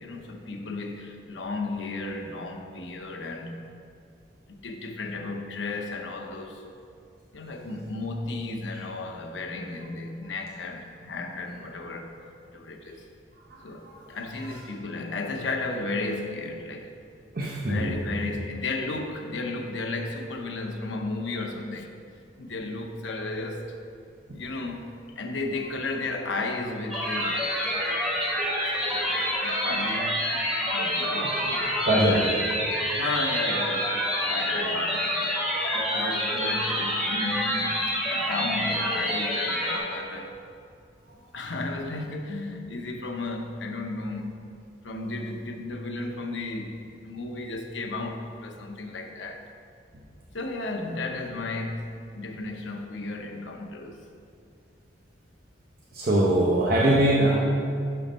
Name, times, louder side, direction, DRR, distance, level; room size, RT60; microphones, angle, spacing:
voice 1, 0.0-3.6 4.5-6.7 7.3-12.2 12.5-13.1 13.6-16.9 17.6-22.0 22.4-23.8 24.3-24.9 25.1-28.3 28.9-31.9 32.1-32.3 32.9-35.4 35.7-40.3 41.3-44.5 44.8-49.4 50.3-54.0, left 2 dB, 85° left, 3 dB, 0.8 m, -34 dB
voice 2, 13.5-13.9 17.3-17.9 31.0-31.1 31.9-32.2 55.9-57.3, right 1 dB, 55° right, -4 dB, 0.8 m, -22 dB
sound 1, 26.9-39.8, equal, 5° right, 1.9 m, -27 dB
6.1 x 5.6 x 5.3 m, 2.4 s
head